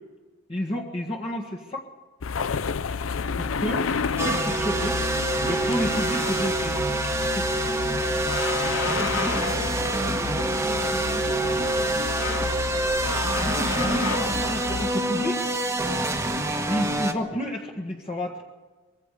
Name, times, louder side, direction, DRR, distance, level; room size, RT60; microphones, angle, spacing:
voice 1, 0.5-1.9 3.4-5.1 5.4-6.8 7.2-7.6 11.9-12.1 13.1-15.4 16.7-18.5, equal, 30° left, -1 dB, 1.8 m, -31 dB
sound 1, 2.2-14.9, left 5 dB, 85° left, 0.6 m, -31 dB
sound 2, 4.2-17.1, right 2 dB, 15° right, 1.4 m, -26 dB
voice 2, 9.3-12.1 12.4-12.6, left 1 dB, 15° left, 4 dB, 2.3 m, -39 dB
24.0 x 22.0 x 5.0 m, 1.3 s
head